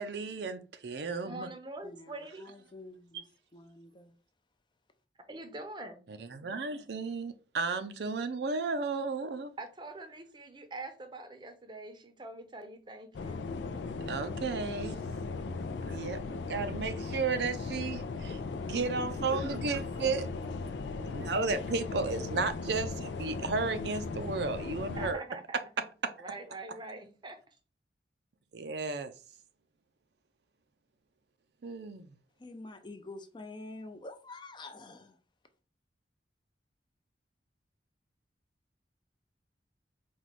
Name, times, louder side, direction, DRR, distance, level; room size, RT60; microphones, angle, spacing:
voice 1, 0.0-1.5 6.2-9.5 14.1-15.0 15.9-18.3 18.7-20.3 21.0-25.2 26.2-26.3 28.5-29.1 31.6-32.1, right 4 dB, 65° right, 0.5 m, -33 dB
voice 2, 1.2-2.5 5.3-6.0 9.6-13.9 15.5-15.6 25.0-25.9 26.2-27.4, right 2 dB, 25° right, 0.6 m, -44 dB
voice 3, 1.8-3.2 3.5-4.1 18.1-19.1 19.4-19.5 20.0-20.6 20.9-21.4 32.4-35.2, left 2 dB, 25° left, 0.5 m, -48 dB
sound 1, 13.1-25.1, left 3 dB, 80° left, 0.4 m, -37 dB
4.6 x 2.3 x 4.1 m
head